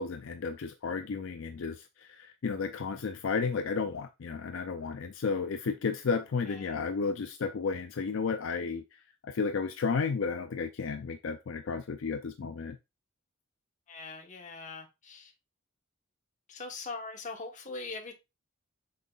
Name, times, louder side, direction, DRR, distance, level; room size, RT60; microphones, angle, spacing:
voice 1, 0.0-12.8, left 5 dB, 65° left, 0.5 m, -33 dB
voice 2, 6.5-6.8 13.9-15.3 16.5-18.1, left 3 dB, 35° left, 1.3 m, -41 dB
7.5 x 5.5 x 2.4 m
head